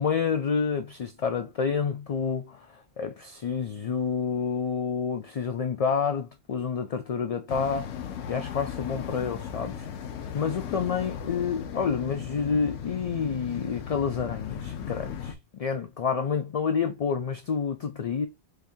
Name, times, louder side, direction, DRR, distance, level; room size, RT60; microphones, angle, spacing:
voice 1, 0.0-8.0 8.3-9.9 10.3-18.3, left 6 dB, 60° left, 0.4 m, -29 dB
sound 1, 7.5-15.3, left 8 dB, 85° left, 0.9 m, -36 dB
4.3 x 2.7 x 3.5 m
omnidirectional pair, 1.1 m